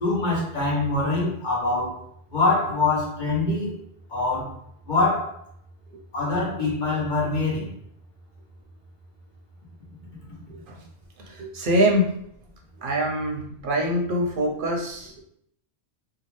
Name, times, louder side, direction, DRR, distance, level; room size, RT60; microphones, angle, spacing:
voice 1, 0.0-2.0 2.3-3.7 4.1-4.5 4.9-5.4 6.1-7.7, left 3 dB, 50° left, -5 dB, 1.1 m, -24 dB
voice 2, 11.3-12.1 12.8-15.1, equal, 60° right, 0 dB, 0.7 m, -24 dB
2.7 x 2.3 x 3.1 m, 0.70 s
omnidirectional pair, 1.1 m